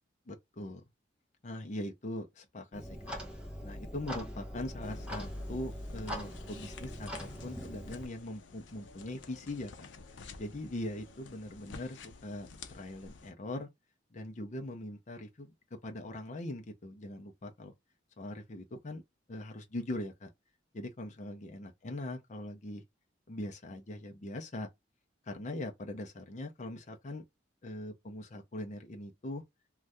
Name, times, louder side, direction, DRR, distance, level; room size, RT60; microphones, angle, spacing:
voice 1, 0.3-0.8 1.4-3.1 3.6-9.9 10.4-13.7 14.1-15.5 15.8-17.7 18.2-19.0 19.3-20.3 20.7-22.8 23.3-24.7 25.3-27.2 27.6-29.4, left 1 dB, 40° left, 0.6 m, -41 dB
Clock, 2.7-8.1, equal, 5° right, 0.9 m, -42 dB
sound 1, 4.8-13.3, left 4 dB, 85° left, 0.5 m, -52 dB
2.6 x 2.3 x 3.3 m
head